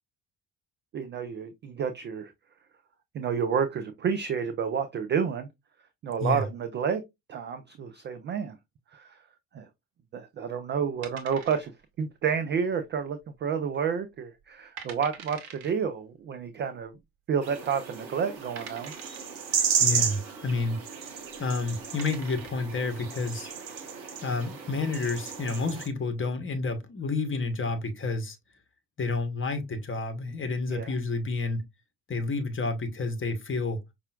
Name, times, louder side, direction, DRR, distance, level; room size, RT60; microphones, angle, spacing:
voice 1, 0.9-2.3 3.1-5.5 6.0-7.0 7.3-8.6 8.9-9.2 9.5-9.7 10.1-11.7 12.0-16.9 17.3-18.9 30.7-30.9, right 7 dB, 25° right, 0.3 m, -30 dB
sound 1, 11.0-12.0 12.2-12.3 13.0-13.4 13.7-13.8 14.4-14.5 14.8-15.7 16.8-16.9 17.6-17.7 18.6-19.4 21.2-21.4 21.8-22.7, right 6 dB, 60° right, 1.0 m, -44 dB
sound 2, 17.4-25.9, right 7 dB, 90° right, 0.7 m, -33 dB
voice 2, 19.8-20.8 21.4-23.5 24.2-28.4 29.0-31.6 32.1-33.8, left 3 dB, 25° left, 1.0 m, -30 dB
5.4 x 2.4 x 2.3 m
figure-of-eight pair, 50°, 50 cm